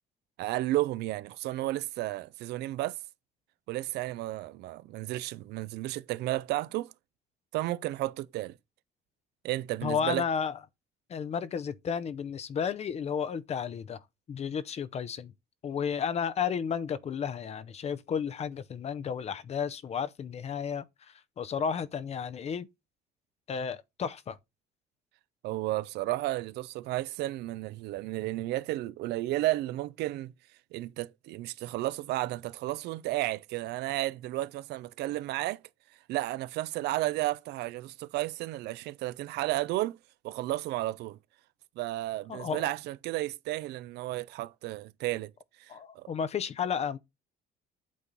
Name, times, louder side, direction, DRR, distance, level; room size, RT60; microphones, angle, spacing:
voice 1, 0.4-3.0 3.7-6.9 7.5-8.6 9.4-10.2 25.4-30.3 30.7-35.6 36.1-40.0 40.2-41.2 41.8-45.3 45.6-46.1, right 16 dB, 80° right, 0.5 m, -33 dB
voice 2, 9.8-10.6 11.1-14.0 14.3-15.3 15.6-22.7 23.5-24.4 42.3-42.7 45.7-47.0, left 7 dB, 40° left, 0.6 m, -33 dB
8.5 x 3.7 x 4.0 m
cardioid pair, 110°, 17 cm